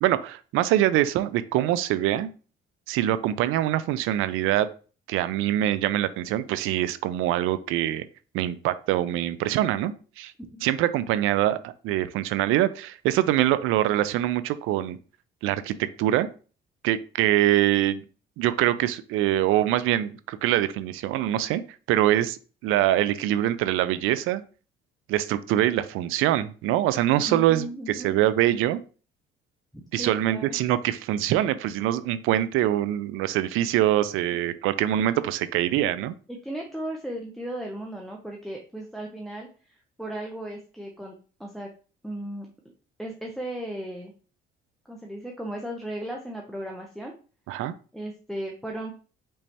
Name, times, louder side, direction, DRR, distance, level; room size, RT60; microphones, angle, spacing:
voice 1, 0.0-2.3 2.9-4.7 5.1-8.0 8.3-10.3 10.6-15.0 15.4-16.3 16.8-18.0 18.4-21.6 21.9-24.4 25.1-28.8 29.9-36.1 47.5-47.7, right 13 dB, 85° right, 14 dB, 0.4 m, -24 dB
voice 2, 27.3-28.1 29.9-30.6 36.3-41.1 41.4-41.7 42.0-42.5 43.0-44.1 44.9-47.1 47.9-48.9, right 1 dB, ahead, 0 dB, 0.6 m, -36 dB
5.3 x 3.3 x 2.8 m, 0.37 s
cardioid pair, 110°, 21 cm